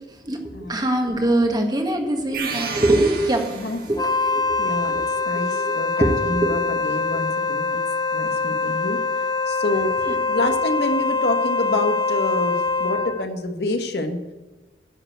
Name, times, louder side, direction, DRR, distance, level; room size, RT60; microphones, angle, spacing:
voice 1, 0.2-3.5 3.9-5.7 6.0-6.5 10.1-10.2, right 1 dB, 25° right, 4 dB, 1.6 m, -23 dB
sound 1, 2.3-4.2, right 5 dB, 55° right, 2.0 m, -31 dB
Wind instrument woodwind instrument, 3.9-13.2, left 4 dB, 25° left, 0.6 m, -24 dB
voice 2, 4.6-4.9 5.3-7.8 8.1-9.0 9.5-9.9 10.3-14.2, left 2 dB, 60° left, 6 dB, 1.4 m, -27 dB
11.0 x 6.9 x 8.0 m, 1.2 s
head